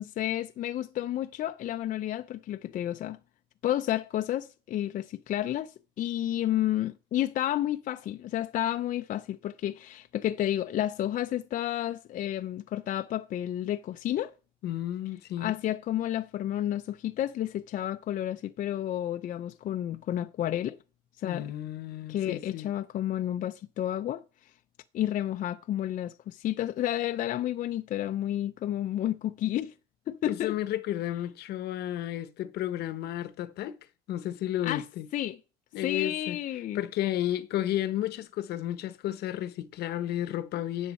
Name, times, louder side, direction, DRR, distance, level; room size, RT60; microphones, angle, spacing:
voice 1, 0.0-3.2 3.6-14.3 15.4-20.8 21.2-21.5 22.1-24.2 24.9-29.7 30.1-30.6 34.6-34.8 35.1-35.4 35.8-36.8, left 12 dB, 50° left, 0.4 m, -31 dB
voice 2, 14.6-15.6 21.2-22.7 30.3-33.8 34.1-35.1 35.7-36.4 36.7-40.9, left 12 dB, 75° left, 0.8 m, -32 dB
10.0 x 7.1 x 4.2 m
cardioid pair, 110°, 17 cm